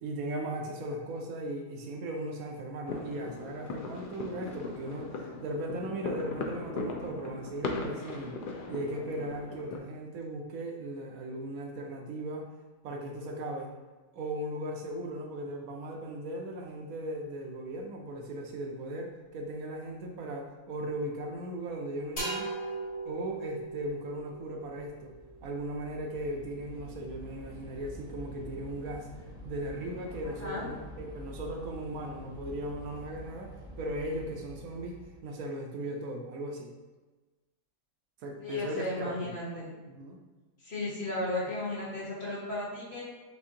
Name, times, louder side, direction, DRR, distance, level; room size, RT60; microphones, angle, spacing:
voice 1, 0.0-8.4 8.7-12.5 12.8-13.7 14.1-22.5 23.0-25.1 25.4-29.1 29.4-36.7 38.2-39.3 39.9-40.2, right 1 dB, 80° right, 2 dB, 1.1 m, -37 dB
sound 1, 2.9-9.8, left 3 dB, 65° left, 0.5 m, -38 dB
sound 2, 22.2-25.8, right 2 dB, 25° left, 1.2 m, -39 dB
Train / Subway metro underground, 22.6-35.2, equal, 5° right, 1.0 m, -47 dB
voice 2, 30.2-30.7 38.4-39.7 40.6-43.0, left 1 dB, 50° left, -7 dB, 1.8 m, -35 dB
6.3 x 2.6 x 2.7 m, 1.2 s
omnidirectional pair, 1.5 m